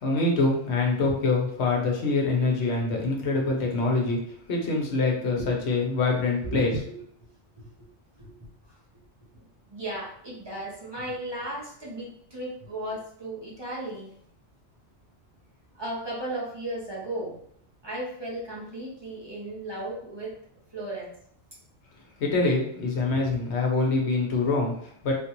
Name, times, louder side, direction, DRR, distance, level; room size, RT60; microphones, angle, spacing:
voice 1, 0.0-4.2 4.5-6.7 22.2-25.1, left 3 dB, 75° left, 0 dB, 1.1 m, -25 dB
voice 2, 6.4-6.9 7.6-7.7 8.2-8.8 9.3-14.1 15.7-17.4 17.8-20.3 20.7-21.1, right 1 dB, 25° right, -5 dB, 0.9 m, -35 dB
3.5 x 2.5 x 2.9 m, 0.65 s
omnidirectional pair, 1.2 m